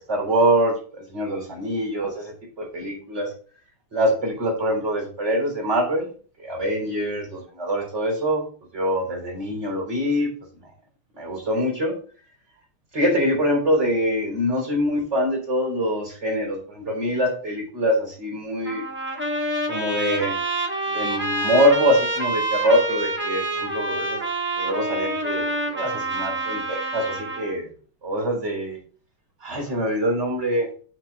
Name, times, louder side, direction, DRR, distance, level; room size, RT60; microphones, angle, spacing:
voice 1, 0.1-3.3 3.9-6.1 6.4-8.4 8.7-10.3 11.2-11.9 12.9-18.8 19.7-20.3 20.9-24.2 24.6-25.5 25.7-27.7 28.0-28.8 29.4-30.7, equal, 35° right, 0 dB, 3.9 m, -24 dB
Trumpet, 18.7-27.6, right 2 dB, 5° right, 1.1 m, -27 dB
6.6 x 4.7 x 6.1 m, 0.42 s
omnidirectional pair, 2.3 m